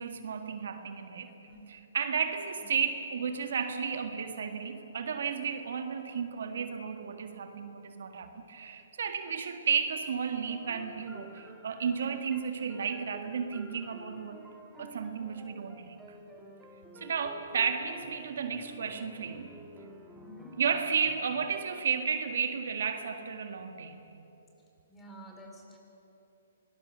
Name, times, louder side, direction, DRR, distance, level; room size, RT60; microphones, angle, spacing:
voice 1, 0.0-1.3 1.7-14.4 14.8-16.0 17.0-19.5 20.6-24.0, right 6 dB, 70° right, 6 dB, 1.8 m, -33 dB
voice 2, 1.3-1.7 2.6-2.8 20.2-20.6 24.9-25.8, right 1 dB, 10° left, 1 dB, 4.5 m, -50 dB
sound 1, 10.5-21.8, equal, 10° right, 2.4 m, -51 dB
25.0 x 20.0 x 6.8 m, 3.0 s
hypercardioid pair, 140°, 0 cm